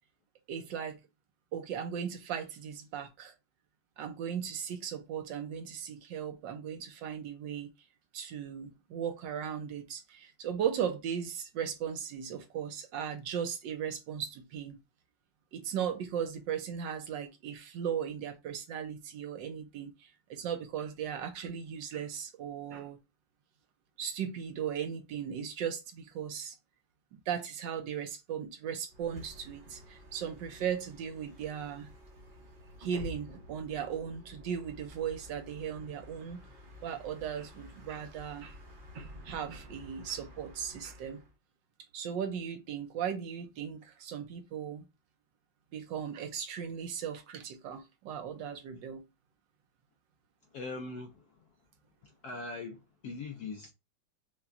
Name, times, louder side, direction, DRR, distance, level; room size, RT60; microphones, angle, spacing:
voice 1, 0.5-1.0 1.5-3.3 4.0-7.7 8.1-14.8 15.5-23.0 24.0-26.6 27.1-31.9 32.8-36.4 36.8-38.6 38.9-41.2 41.9-44.9 45.7-49.0, right 8 dB, 70° right, 1.2 m, -37 dB
Bus, 28.9-41.3, equal, 45° right, 0.6 m, -51 dB
voice 2, 50.5-51.5 52.0-53.7, left 3 dB, 75° left, 0.9 m, -41 dB
5.8 x 2.2 x 2.5 m
omnidirectional pair, 2.2 m